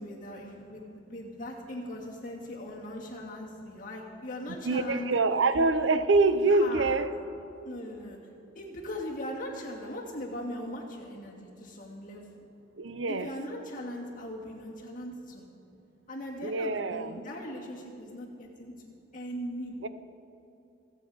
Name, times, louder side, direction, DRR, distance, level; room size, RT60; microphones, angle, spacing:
voice 1, 0.0-5.1 6.5-6.9 7.6-8.2 8.5-12.5 13.1-15.5 16.1-18.9 19.1-19.9, left 1 dB, 45° left, -2 dB, 2.3 m, -39 dB
voice 2, 4.6-7.1 12.8-13.3 16.4-17.2 19.8-19.9, right 3 dB, 90° right, 13 dB, 0.7 m, -25 dB
25.5 x 8.4 x 5.1 m, 2.9 s
head